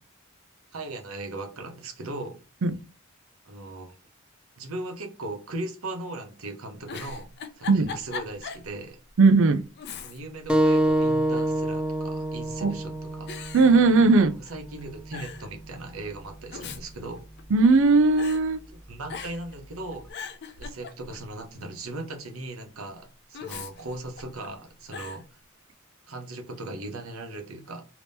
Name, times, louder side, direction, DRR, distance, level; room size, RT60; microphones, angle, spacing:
voice 1, 0.7-2.4 3.4-3.9 4.6-7.3 7.6-9.0 10.0-13.3 14.5-17.2 18.9-20.3 20.6-25.4 26.1-27.8, right 2 dB, 90° right, 0.8 m, -38 dB
Giggle, 6.9-8.7 9.1-9.2 9.8-10.5 10.8-11.6 12.4-12.8 13.3-14.5 14.8-14.9 15.1-15.5 16.3-17.8 18.2-18.4 19.1-19.6 19.9-21.3 23.3-24.5 24.9-25.2, left 5 dB, 55° left, 0.5 m, -40 dB
voice 2, 9.2-9.6 12.6-12.7 13.5-14.3 17.5-18.6, right 3 dB, 65° right, 0.4 m, -18 dB
sound 1, 10.5-15.6, right 1 dB, 5° right, 0.4 m, -27 dB
3.5 x 2.9 x 2.6 m
head